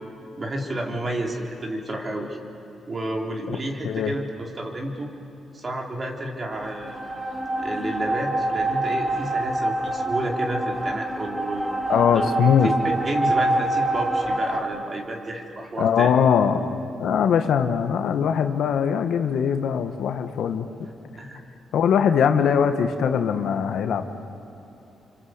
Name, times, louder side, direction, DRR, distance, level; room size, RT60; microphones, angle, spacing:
voice 1, 0.4-2.4 2.9-5.1 5.5-7.0 7.6-11.8 12.1-12.3 12.6-12.7 13.0-16.1 21.2-21.4, right 1 dB, 35° right, 1 dB, 4.1 m, -30 dB
voice 2, 3.8-4.1 11.9-12.7 15.8-20.9 21.7-24.0, left 7 dB, 75° left, 7 dB, 1.6 m, -21 dB
sound 1, 6.5-14.6, right 1 dB, 15° right, 3.5 m, -26 dB
27.5 x 25.5 x 8.1 m, 2.9 s
cardioid pair, 80°, 0 cm